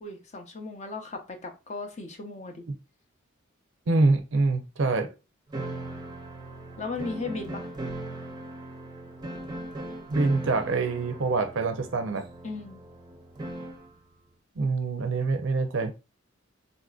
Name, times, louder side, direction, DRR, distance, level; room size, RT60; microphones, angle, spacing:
voice 1, 0.0-2.6 6.8-7.7 12.4-12.8, left 3 dB, 35° left, 0.6 m, -36 dB
voice 2, 3.9-5.1 10.1-12.3 14.6-15.9, right 3 dB, 65° right, 0.5 m, -25 dB
sound 1, 5.5-13.9, right 1 dB, 20° right, 0.5 m, -38 dB
3.9 x 2.5 x 2.3 m
head